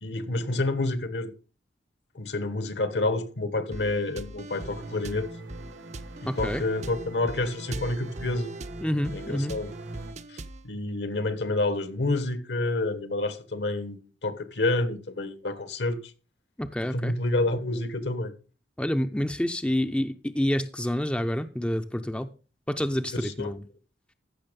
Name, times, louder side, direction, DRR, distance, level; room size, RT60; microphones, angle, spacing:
voice 1, 0.0-1.3 2.1-5.3 6.2-8.5 9.1-9.7 10.3-16.0 16.9-18.3 23.1-23.5, left 2 dB, 70° left, 1.4 m, -29 dB
sound 1, 3.7-10.7, right 2 dB, 40° right, 0.6 m, -41 dB
sound 2, 4.5-10.1, right 2 dB, 90° right, 2.2 m, -43 dB
voice 2, 6.3-6.6 8.8-9.5 16.6-17.1 18.8-22.3 22.7-23.6, equal, 5° left, 0.5 m, -28 dB
14.5 x 6.1 x 5.2 m
head